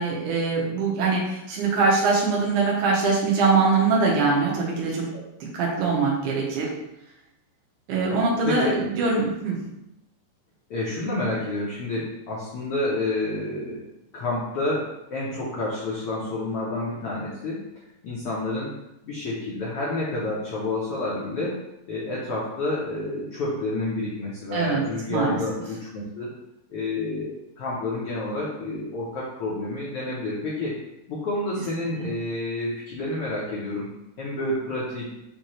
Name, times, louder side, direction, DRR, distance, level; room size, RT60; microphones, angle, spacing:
voice 1, 0.0-5.1 5.5-6.7 7.9-9.6 24.5-24.8 25.1-25.4, right 4 dB, 75° right, -3 dB, 2.4 m, -22 dB
voice 2, 10.7-13.8 14.1-17.6 18.0-18.7 19.0-21.6 21.9-26.3 26.7-30.8 31.1-33.9 34.2-35.1, left 2 dB, 75° left, -6 dB, 1.3 m, -29 dB
5.8 x 2.7 x 3.0 m, 0.88 s
omnidirectional pair, 3.6 m